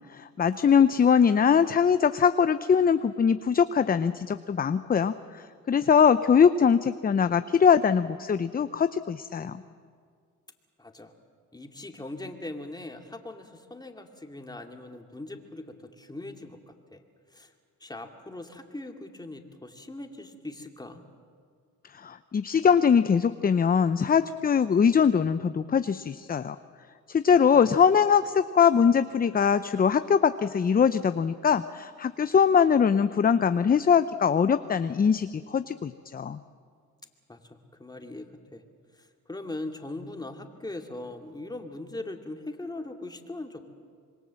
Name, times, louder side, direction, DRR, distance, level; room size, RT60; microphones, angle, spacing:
voice 1, 0.1-9.5 22.0-26.6 27.1-36.4, left 7 dB, 30° left, 12 dB, 0.6 m, -22 dB
voice 2, 10.8-11.1 11.5-17.0 17.3-17.5 17.8-21.0 27.5-27.7 37.3-38.6 39.3-43.6, left 2 dB, 15° left, 4 dB, 2.5 m, -40 dB
26.5 x 22.0 x 7.6 m, 2.1 s
cardioid pair, 90°, 30 cm